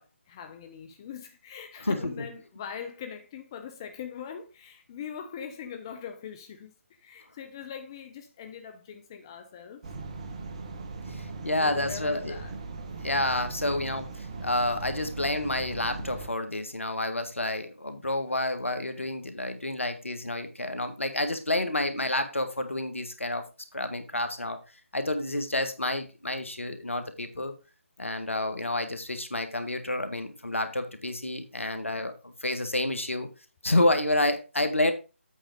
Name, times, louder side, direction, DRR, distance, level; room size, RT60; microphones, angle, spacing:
voice 1, 0.0-9.8 11.6-12.6 13.6-13.8 21.6-21.9, left 8 dB, 20° left, 0.6 m, -42 dB
sound 1, 9.8-16.3, right 3 dB, 30° right, 1.0 m, -39 dB
voice 2, 11.1-12.4 13.0-23.4 23.7-24.6 24.9-27.5 28.0-33.3 33.6-34.9, left 1 dB, 70° left, 1.7 m, -29 dB
8.3 x 5.2 x 5.1 m
figure-of-eight pair, 150°, 7 cm